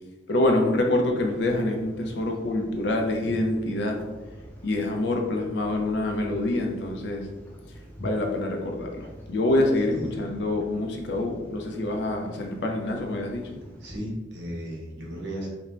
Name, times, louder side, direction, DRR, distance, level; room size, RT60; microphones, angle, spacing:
voice 1, 0.3-4.0 4.6-7.3 8.0-13.5, left 1 dB, 65° left, 2 dB, 0.5 m, -26 dB
sound 1, 1.2-14.0, equal, 10° left, 0.5 m, -44 dB
voice 2, 13.8-15.5, equal, 70° right, -3 dB, 0.8 m, -35 dB
2.5 x 2.1 x 3.1 m, 1.1 s
head